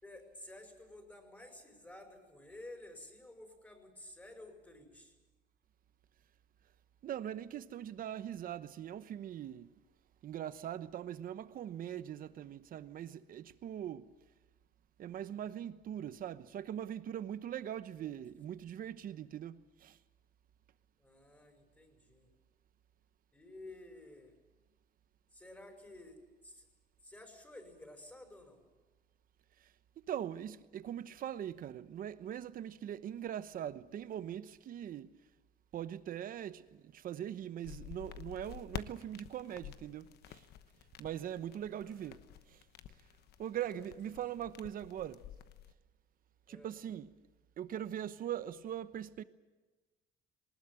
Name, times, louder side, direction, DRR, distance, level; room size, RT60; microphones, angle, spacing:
voice 1, 0.0-5.2 15.4-15.6 21.0-22.3 23.3-24.3 25.3-26.7 27.0-28.6 41.8-42.2 43.7-44.5 46.5-46.8, left 1 dB, 10° left, 5.3 m, -53 dB
voice 2, 7.0-9.7 10.2-14.1 15.0-20.0 30.1-35.1 35.7-40.4 41.0-42.2 42.5-42.6 43.4-45.2 46.5-47.1 47.6-49.2, right 10 dB, 55° right, 1.0 m, -41 dB
sound 1, 37.6-45.7, left 11 dB, 75° left, 1.1 m, -50 dB
20.0 x 19.5 x 9.1 m
cardioid pair, 110°, 17 cm